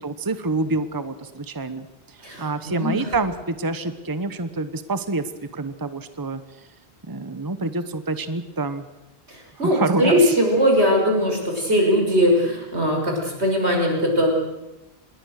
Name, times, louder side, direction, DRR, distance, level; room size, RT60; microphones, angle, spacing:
voice 1, 0.0-5.2 5.5-6.4 7.1-8.8 9.7-10.3, right 3 dB, 20° right, 11 dB, 1.1 m, -27 dB
voice 2, 2.2-3.0 9.3-14.3, equal, 85° right, 1 dB, 6.4 m, -20 dB
27.0 x 21.5 x 6.6 m, 1.0 s
omnidirectional pair, 1.1 m